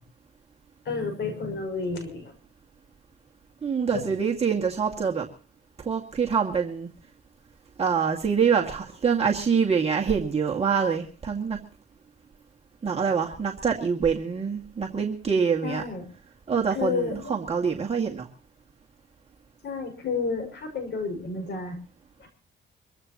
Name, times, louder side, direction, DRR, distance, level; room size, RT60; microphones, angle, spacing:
voice 1, 0.8-2.3 3.9-4.1 15.6-16.1 16.7-17.3 19.6-21.8 22.2-22.3, left 4 dB, 65° left, 5 dB, 6.0 m, -31 dB
voice 2, 3.6-5.3 5.8-6.9 7.8-11.6 12.8-15.8 16.5-18.3, right 6 dB, 30° right, -1 dB, 2.1 m, -25 dB
25.0 x 15.0 x 3.0 m, 0.38 s
cardioid pair, 90°, 20 cm